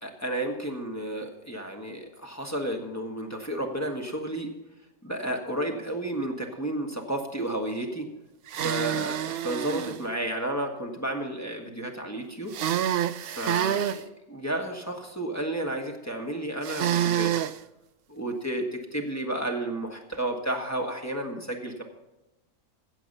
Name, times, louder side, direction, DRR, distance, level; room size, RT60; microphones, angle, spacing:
voice 1, 0.0-4.5 5.0-8.1 8.5-12.5 13.2-17.3 18.1-21.8, right 1 dB, 10° left, 1 dB, 1.5 m, -32 dB
sound 1, 8.5-10.0 12.5-14.0 16.6-17.6, right 10 dB, 65° right, 0.5 m, -27 dB
15.5 x 7.3 x 5.5 m, 0.97 s
omnidirectional pair, 1.6 m